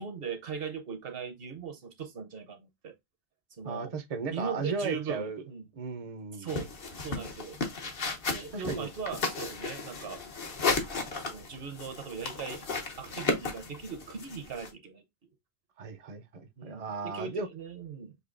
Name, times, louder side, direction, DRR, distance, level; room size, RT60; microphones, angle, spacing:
voice 1, 0.0-3.0 3.5-3.9 4.3-5.7 6.3-6.7 7.0-7.6 8.3-10.2 11.2-12.7 13.0-15.0 16.6-18.2, right 6 dB, 65° right, 1.0 m, -39 dB
voice 2, 3.6-5.4 5.7-6.6 8.5-8.9 15.8-17.5, right 4 dB, 40° right, 0.6 m, -36 dB
sound 1, 6.5-14.7, left 4 dB, 60° left, 1.1 m, -34 dB
6.6 x 2.7 x 2.5 m
omnidirectional pair, 1.1 m